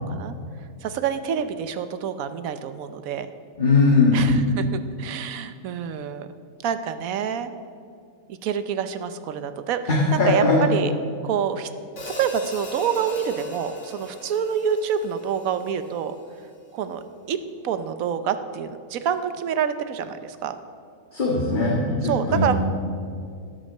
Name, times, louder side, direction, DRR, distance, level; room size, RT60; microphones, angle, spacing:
voice 1, 0.8-3.3 4.1-6.3 6.6-7.5 8.4-10.4 10.7-10.9 11.2-11.7 12.2-16.2 16.7-20.6 22.0-22.6, right 8 dB, 75° right, 11 dB, 1.1 m, -27 dB
voice 2, 3.6-4.3 9.9-10.6 21.1-22.6, left 3 dB, 35° left, -4 dB, 1.8 m, -19 dB
Hi-hat, 12.0-16.2, left 2 dB, 55° left, 2.0 m, -39 dB
12.0 x 8.8 x 6.5 m, 2.3 s
omnidirectional pair, 1.5 m